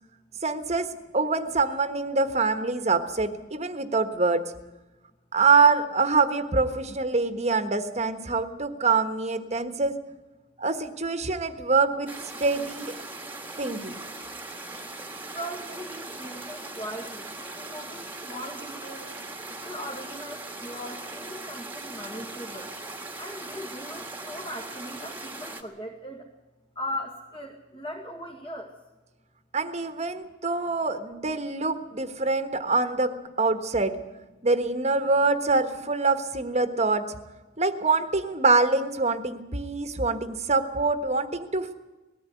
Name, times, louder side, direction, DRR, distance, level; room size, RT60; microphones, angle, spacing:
voice 1, 0.4-0.9 1.1-4.5 5.3-10.0 10.6-12.1 12.4-12.9 13.6-14.0 29.5-34.0 34.4-37.2 37.6-41.7, right 4 dB, 35° right, 9 dB, 1.4 m, -25 dB
sound 1, 12.1-25.6, right 2 dB, 10° right, 1.7 m, -39 dB
voice 2, 15.3-19.1 19.6-22.7 23.2-26.3 26.8-28.7, equal, 25° left, -2 dB, 2.2 m, -39 dB
20.0 x 14.0 x 9.6 m, 1.1 s
head